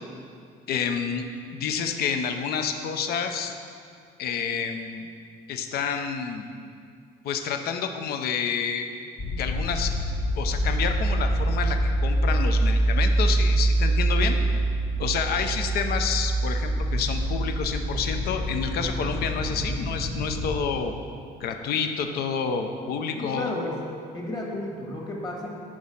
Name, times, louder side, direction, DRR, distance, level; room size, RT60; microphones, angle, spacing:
voice 1, 0.7-1.2 1.5-3.5 4.2-5.1 5.5-6.5 7.2-8.9 9.4-9.9 10.4-14.4 15.0-20.9 21.4-23.5, left 6 dB, 65° left, 6 dB, 0.6 m, -29 dB
sound 1, 9.2-20.6, right 1 dB, 40° left, 0.8 m, -25 dB
voice 2, 23.2-23.8 24.1-25.6, left 1 dB, 25° left, -2 dB, 1.5 m, -32 dB
6.1 x 5.0 x 5.5 m, 2.3 s
cardioid pair, 110°, 17 cm